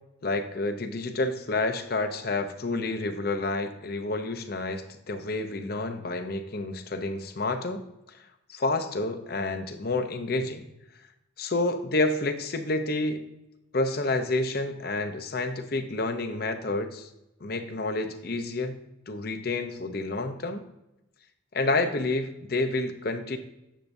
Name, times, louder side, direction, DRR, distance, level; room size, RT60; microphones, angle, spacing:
voice 1, 0.2-7.8 8.1-8.2 8.5-10.7 11.4-13.2 13.7-17.1 17.4-18.8 19.1-20.6 21.5-23.4, left 2 dB, 50° left, 8 dB, 0.7 m, -29 dB
10.0 x 7.2 x 2.7 m, 0.88 s
head